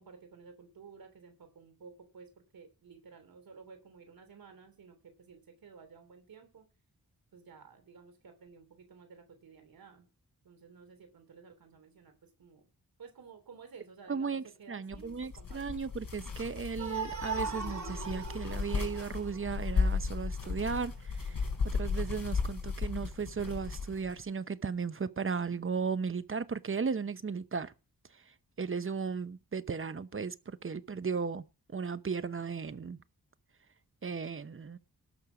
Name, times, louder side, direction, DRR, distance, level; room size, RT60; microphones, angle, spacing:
voice 1, 0.0-6.6 7.3-10.1 10.4-12.6 13.0-15.9, right 5 dB, 85° right, 3.2 m, -54 dB
voice 2, 14.1-27.7 28.6-31.4 31.7-33.0 34.0-34.8, right 5 dB, 35° right, 0.9 m, -36 dB
sound 1, 14.9-24.2, left 4 dB, 70° left, 4.9 m, -35 dB
sound 2, 16.8-20.2, right 5 dB, 55° right, 2.7 m, -39 dB
18.0 x 6.5 x 5.1 m
cardioid pair, 70°, 34 cm